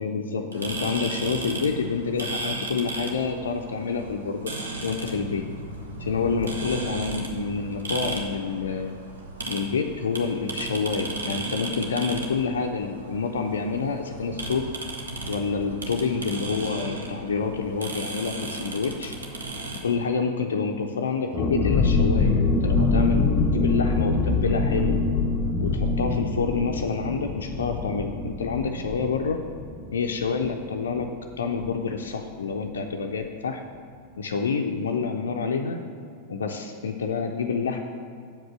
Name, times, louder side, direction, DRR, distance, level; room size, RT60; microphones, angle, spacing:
voice 1, 0.0-4.6 4.8-5.5 6.0-8.9 9.5-14.7 15.3-19.1 19.8-25.0 25.6-29.4 29.9-31.1 31.4-33.6 34.2-35.8 36.3-37.8, left 5 dB, 65° left, 3 dB, 0.5 m, -28 dB
sound 1, 0.5-19.8, right 2 dB, 70° right, 1.0 m, -35 dB
sound 2, 21.3-30.7 31.0-31.1 31.4-31.7, left 3 dB, 25° left, 0.8 m, -24 dB
7.3 x 5.2 x 7.3 m, 2.3 s
figure-of-eight pair, 90°, 0 cm